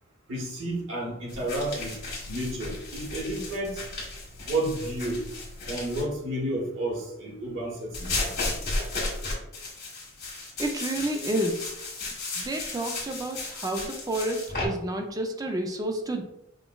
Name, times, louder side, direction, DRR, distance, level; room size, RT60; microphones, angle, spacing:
voice 1, 0.3-2.0 2.3-3.8 4.5-5.2 5.6-8.3, right 1 dB, 65° right, -4 dB, 1.0 m, -31 dB
sound 1, 1.3-6.0 7.9-14.7, left 2 dB, 55° left, 1.4 m, -34 dB
voice 2, 10.6-11.6 12.4-16.2, right 1 dB, 20° right, 4 dB, 0.3 m, -30 dB
5.1 x 2.1 x 2.2 m, 0.79 s
head